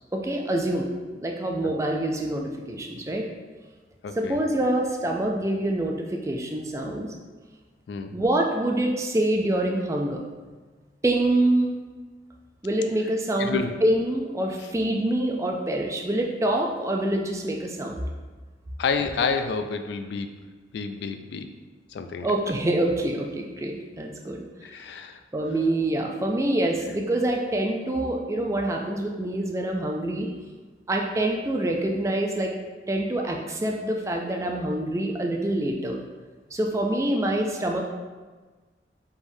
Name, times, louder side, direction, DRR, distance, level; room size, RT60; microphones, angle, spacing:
voice 1, 0.1-0.9 1.2-3.3 4.2-7.1 8.1-10.2 11.0-11.8 12.6-18.0 22.2-24.4 25.3-30.3 30.9-32.5 32.9-36.0 36.5-37.8, right 1 dB, 15° right, 1 dB, 0.3 m, -26 dB
voice 2, 4.0-4.4 7.9-8.1 13.4-13.7 18.8-20.4 20.7-21.5 21.9-22.3 24.6-25.2, left 5 dB, 65° left, 8 dB, 0.3 m, -29 dB
5.0 x 3.4 x 2.6 m, 1.4 s
head